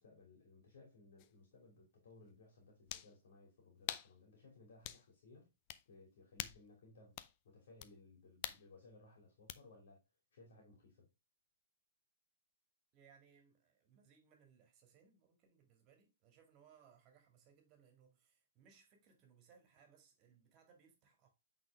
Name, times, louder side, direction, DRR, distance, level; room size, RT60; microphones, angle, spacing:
voice 1, 0.0-5.5 5.9-10.0 10.3-11.1, left 3 dB, 60° left, 2.6 m, -62 dB
sound 1, 1.2-1.3 2.9-3.1 3.9-4.1 4.8-5.0 5.7-5.8 6.4-6.7 7.2-7.3 7.8-7.9 8.4-8.6 9.5-9.6, left 14 dB, 40° left, 0.5 m, -44 dB
voice 2, 12.9-21.3, right 7 dB, 35° right, 2.1 m, -68 dB
8.3 x 4.1 x 3.4 m
hypercardioid pair, 120°, 0 cm